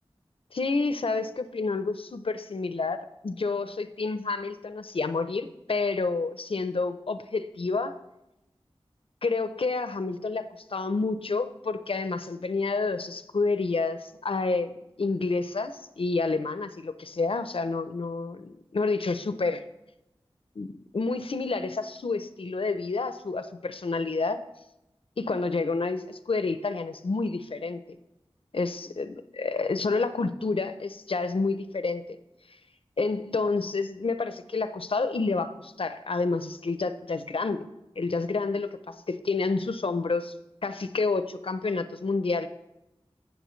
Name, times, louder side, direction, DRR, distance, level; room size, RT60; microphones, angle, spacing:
voice 1, 0.5-8.0 9.2-19.6 20.6-24.4 25.2-27.8 28.5-32.0 33.0-37.7 38.0-40.3 40.6-42.5, left 3 dB, 65° left, 11 dB, 0.6 m, -29 dB
16.0 x 6.3 x 3.2 m, 0.92 s
wide cardioid pair, 50°, 10 cm